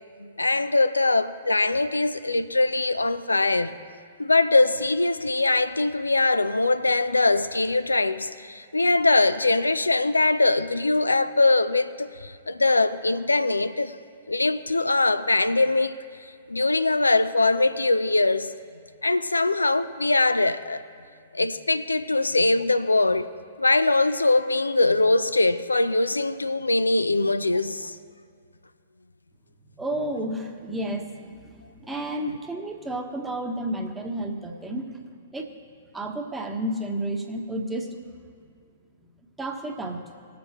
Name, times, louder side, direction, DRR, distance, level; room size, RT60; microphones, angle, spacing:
voice 1, 0.2-3.7 4.2-13.9 14.3-15.9 16.5-18.5 19.0-20.8 21.3-23.3 23.6-27.9, left 2 dB, 85° left, 0.4 m, -22 dB
voice 2, 29.8-31.3 31.7-35.0 35.3-35.5 35.9-37.9 39.4-40.0, right 1 dB, 10° right, 1.1 m, -31 dB
20.5 x 6.8 x 3.0 m
figure-of-eight pair, 110°, 0 cm